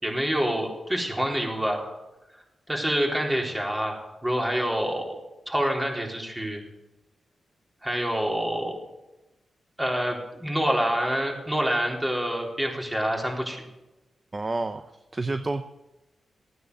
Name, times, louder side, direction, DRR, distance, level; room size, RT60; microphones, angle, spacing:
voice 1, 0.0-1.9 2.7-5.2 5.5-6.6 7.8-8.8 9.8-13.6, equal, 15° right, 0 dB, 3.8 m, -27 dB
voice 2, 14.3-14.8 15.1-15.7, right 2 dB, 35° right, 10 dB, 0.7 m, -29 dB
14.5 x 9.4 x 6.8 m, 1.0 s
cardioid pair, 55°, 0 cm